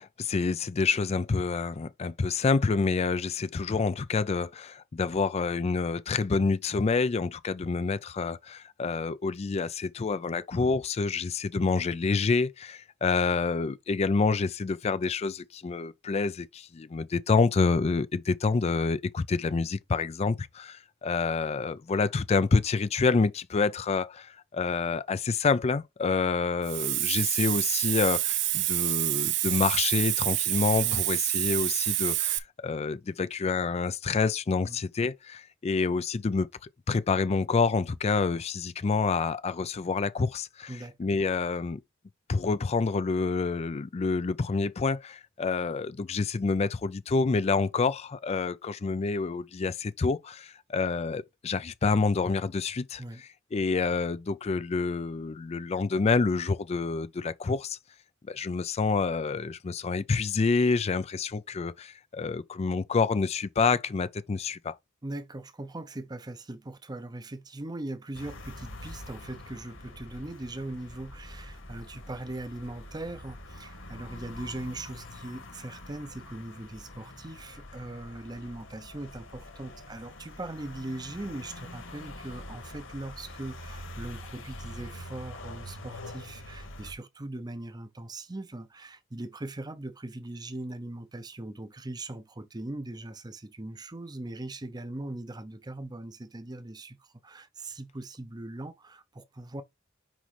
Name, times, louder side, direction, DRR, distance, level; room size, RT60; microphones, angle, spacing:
voice 1, 0.0-41.8 42.3-57.8 58.2-64.7, left 4 dB, 30° left, 0.4 m, -28 dB
Hiss, 26.6-32.4, right 16 dB, 60° right, 0.6 m, -27 dB
voice 2, 65.0-99.6, right 2 dB, 20° right, 0.6 m, -40 dB
sound 1, 68.1-86.9, left 1 dB, 70° left, 2.0 m, -45 dB
6.0 x 5.3 x 3.3 m
head